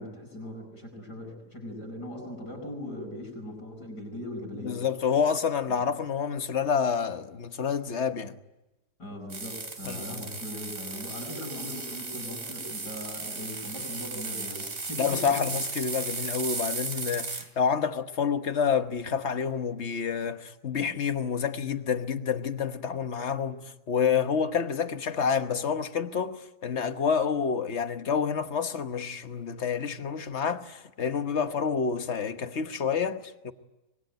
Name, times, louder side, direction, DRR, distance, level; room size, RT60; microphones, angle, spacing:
voice 1, 0.0-4.8 5.8-5.9 9.0-15.4, left 1 dB, 90° left, 8.8 m, -39 dB
voice 2, 4.6-8.3 9.8-10.3 15.0-33.5, left 6 dB, 45° left, 1.4 m, -28 dB
sound 1, 9.3-17.5, right 4 dB, 55° right, 3.2 m, -36 dB
25.0 x 22.0 x 9.3 m
omnidirectional pair, 1.7 m